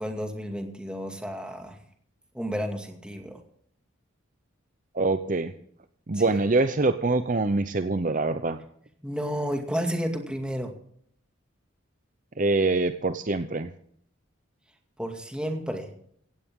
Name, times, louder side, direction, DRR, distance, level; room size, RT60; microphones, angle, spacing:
voice 1, 0.0-1.8 2.3-3.4 6.1-6.3 9.0-10.7 15.0-15.9, equal, 5° right, 3 dB, 2.2 m, -31 dB
voice 2, 4.9-5.5 6.1-8.6 12.4-13.7, right 3 dB, 40° right, 10 dB, 0.7 m, -24 dB
16.5 x 16.0 x 3.7 m, 0.63 s
head